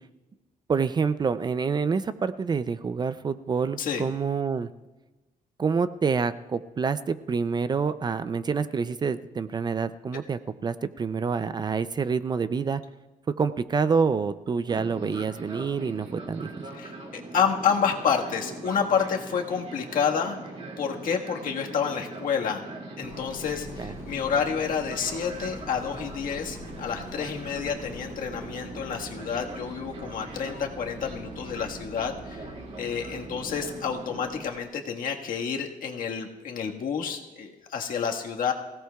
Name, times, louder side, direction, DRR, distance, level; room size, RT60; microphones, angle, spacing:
voice 1, 0.7-4.7 5.6-12.8 13.4-16.5 23.8-23.9, right 5 dB, 30° right, 13 dB, 0.4 m, -27 dB
Fixed-wing aircraft airplane, 14.7-34.5, right 2 dB, 45° right, 2.2 m, -41 dB
voice 2, 16.7-20.4 20.8-22.6 23.0-32.5 32.8-38.5, left 7 dB, 70° left, 1 dB, 1.5 m, -29 dB
Engine, 23.0-34.7, left 3 dB, 30° left, 4.6 m, -46 dB
25.0 x 16.5 x 2.3 m, 1.2 s
wide cardioid pair, 155°, 15 cm